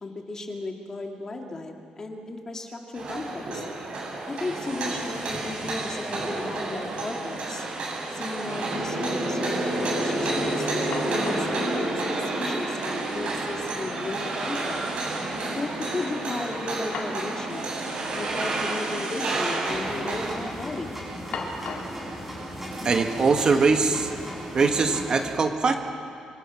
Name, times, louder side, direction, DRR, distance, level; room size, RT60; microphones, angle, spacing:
voice 1, 0.0-3.6 4.3-7.6 8.1-14.8 15.6-17.7 18.2-20.9, left 2 dB, 25° left, 2 dB, 2.2 m, -35 dB
sound 1, 2.9-20.3, right 2 dB, 50° right, 7.7 m, -29 dB
sound 2, 4.8-5.4 5.7-6.6 6.9-7.0 10.4-10.5 10.9-11.6 12.7-12.8 13.2-13.3 16.5-17.3 17.6-17.7 18.6-18.8 19.1-19.6 20.0-20.4 21.3-22.0, left 4 dB, 60° left, 3.9 m, -38 dB
sound 3, 19.7-25.2, equal, 10° right, 7.2 m, -36 dB
voice 2, 22.8-24.1 24.5-25.7, right 4 dB, 35° right, 5 dB, 1.5 m, -22 dB
26.0 x 25.5 x 6.3 m, 2.5 s
cardioid pair, 165°, 2 cm